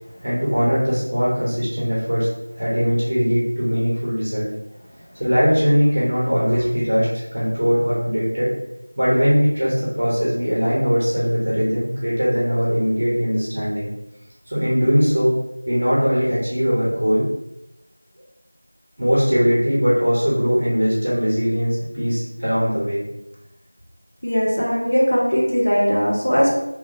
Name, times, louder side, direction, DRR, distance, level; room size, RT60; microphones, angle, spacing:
voice 1, 0.2-2.3 2.6-4.5 5.2-8.5 9.0-13.9 14.5-15.3 15.6-17.2 19.0-23.0, equal, 20° right, -7 dB, 0.8 m, -20 dB
voice 2, 24.2-26.5, equal, 35° left, -5 dB, 0.7 m, -19 dB
2.9 x 2.6 x 4.0 m, 0.89 s
figure-of-eight pair, 180°, 0 cm